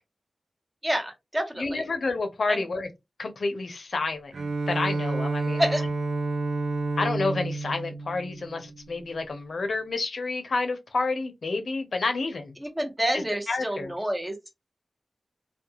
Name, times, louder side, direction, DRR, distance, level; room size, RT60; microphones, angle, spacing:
voice 1, 0.8-1.8 2.5-2.6 5.6-5.9 12.6-14.4, equal, 15° right, 0.9 m, -28 dB
voice 2, 1.6-2.9 3.2-4.3 4.7-5.6 7.0-12.5 13.5-13.9, left 3 dB, 75° left, 0.6 m, -29 dB
Bowed string instrument, 4.3-9.0, right 3 dB, 85° right, 0.5 m, -30 dB
2.3 x 2.2 x 2.8 m
cardioid pair, 55°, 0 cm